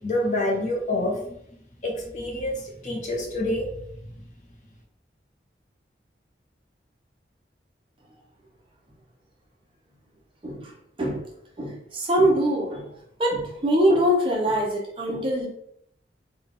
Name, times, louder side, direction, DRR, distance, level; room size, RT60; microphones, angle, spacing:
voice 1, 0.0-1.4 1.8-3.7, left 1 dB, 45° left, -1 dB, 0.8 m, -27 dB
voice 2, 11.6-12.8 13.2-15.5, equal, 30° right, -2 dB, 0.8 m, -23 dB
3.4 x 2.4 x 3.8 m, 0.72 s
head